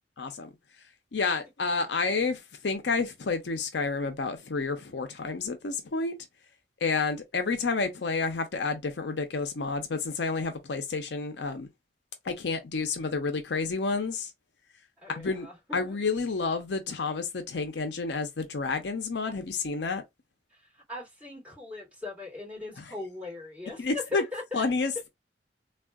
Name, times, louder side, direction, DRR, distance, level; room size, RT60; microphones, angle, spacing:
voice 1, 0.2-0.5 1.1-6.2 6.8-11.7 12.3-14.3 15.1-15.5 15.7-20.0 23.8-24.2 24.5-25.1, left 4 dB, 70° left, 0.6 m, -30 dB
voice 2, 15.0-16.0 20.9-24.6, left 3 dB, 10° right, 2.4 m, -39 dB
3.5 x 2.3 x 2.3 m
head